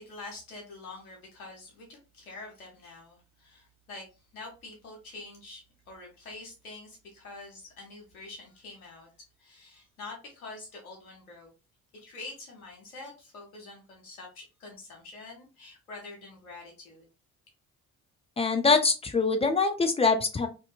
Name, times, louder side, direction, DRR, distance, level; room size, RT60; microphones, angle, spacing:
voice 1, 0.0-9.1 9.4-11.5 12.0-17.1, left 3 dB, 85° left, 0 dB, 1.0 m, -46 dB
voice 2, 18.4-20.5, left 4 dB, 15° left, 6 dB, 0.4 m, -24 dB
2.6 x 2.5 x 2.3 m, 0.31 s
figure-of-eight pair, 45°, 42 cm